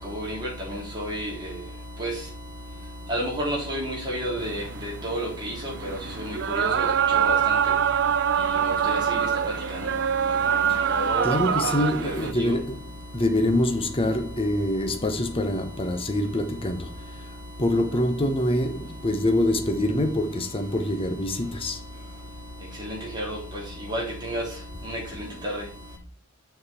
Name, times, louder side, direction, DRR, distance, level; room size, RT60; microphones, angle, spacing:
voice 1, 1.0-1.3 2.0-2.1 3.1-4.6 5.0-5.7 6.6-6.9 7.1-7.3 8.9-9.0 11.0-11.2 23.1-23.4 23.9-24.4 24.9-25.0, equal, 20° right, 3.4 m, -29 dB
sound 1, 4.4-12.3, right 8 dB, 50° right, 0.4 m, -24 dB
voice 2, 11.2-12.8 13.1-16.9 17.6-21.8, left 1 dB, 25° left, 0.8 m, -25 dB
7.0 x 5.8 x 4.4 m
head